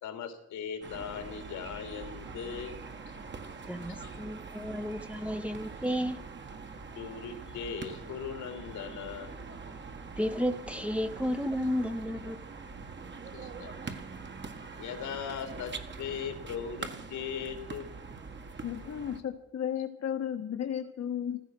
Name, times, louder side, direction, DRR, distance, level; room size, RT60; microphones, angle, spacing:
voice 1, 0.0-2.8 3.8-4.2 7.0-9.3 13.3-13.9 14.8-17.9, left 7 dB, 80° left, 7 dB, 2.9 m, -39 dB
sound 1, 0.8-19.2, right 4 dB, 40° right, 1.8 m, -43 dB
voice 2, 3.7-6.2 10.2-12.4, equal, 5° right, 7 dB, 1.0 m, -32 dB
voice 3, 18.6-21.4, left 9 dB, 55° left, 5 dB, 1.5 m, -34 dB
15.5 x 14.0 x 6.2 m, 0.77 s
cardioid pair, 90°, 30 cm